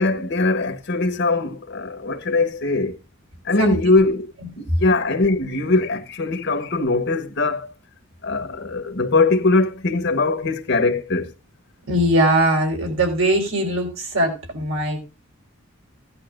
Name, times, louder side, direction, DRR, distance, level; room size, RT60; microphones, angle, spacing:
voice 1, 0.0-3.0 3.4-4.3 4.6-7.7 8.2-11.3, left 3 dB, 55° left, 1.3 m, -21 dB
voice 2, 11.9-15.0, right 1 dB, 75° right, 4.7 m, -20 dB
16.0 x 11.0 x 2.5 m
head